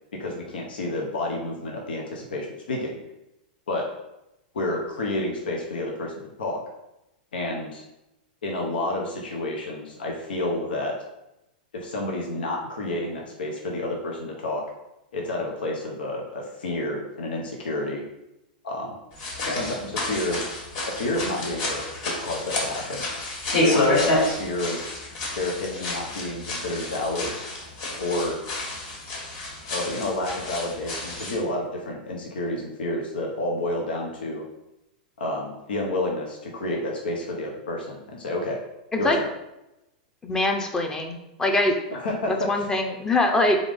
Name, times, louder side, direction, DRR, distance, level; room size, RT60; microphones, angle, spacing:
voice 1, 0.2-3.0 3.7-3.9 4.5-6.1 6.4-6.6 7.3-7.8 8.4-11.0 11.7-14.6 15.1-18.0 18.6-19.0 19.5-20.4 20.9-23.0 23.6-24.8 25.3-27.4 28.0-28.4 29.7-34.5 35.2-38.6 39.0-39.3 41.9-42.6, left 2 dB, 90° left, 0 dB, 0.9 m, -29 dB
sound 1, 19.1-31.4, left 2 dB, 55° left, 1.7 m, -29 dB
voice 2, 40.2-41.8 42.3-43.6, left 2 dB, 10° left, 4 dB, 0.6 m, -23 dB
3.9 x 3.6 x 3.5 m, 0.90 s
hypercardioid pair, 135°, 5 cm